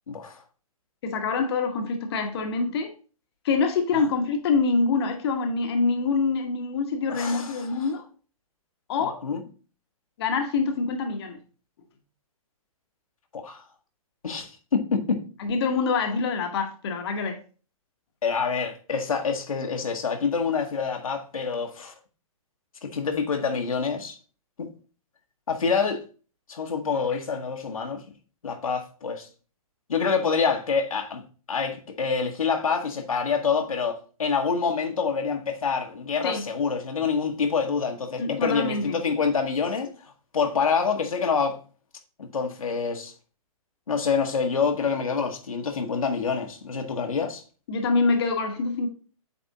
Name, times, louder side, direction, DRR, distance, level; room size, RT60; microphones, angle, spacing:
voice 1, 0.1-0.4 3.9-4.0 7.1-7.8 9.2-9.4 13.3-13.6 14.2-15.2 18.2-21.9 22.8-24.2 24.6-24.7 25.5-26.0 26.5-28.0 28.4-29.3 29.9-31.2 31.5-39.9 40.3-41.6 42.2-43.1 43.9-47.4, left 5 dB, 70° left, 1.1 m, -26 dB
voice 2, 1.0-2.9 3.4-8.0 8.9-9.2 10.2-11.4 15.4-17.4 36.2-36.4 38.2-39.0 47.7-48.9, left 4 dB, 45° left, 1.0 m, -25 dB
8.3 x 3.5 x 3.8 m
figure-of-eight pair, 120°, 19 cm